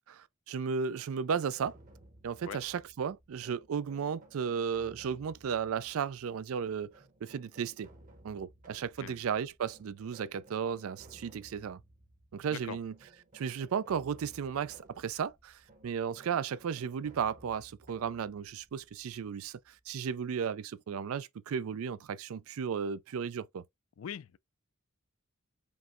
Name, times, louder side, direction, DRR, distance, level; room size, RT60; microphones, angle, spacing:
voice 1, 0.1-1.8 2.2-7.9 8.2-11.8 12.3-12.9 13.3-23.6, right 7 dB, 85° right, 0.4 m, -35 dB
sound 1, 1.3-20.0, right 1 dB, 40° right, 0.9 m, -59 dB
voice 2, 24.0-24.4, left 8 dB, 75° left, 0.4 m, -42 dB
5.2 x 2.1 x 3.6 m
head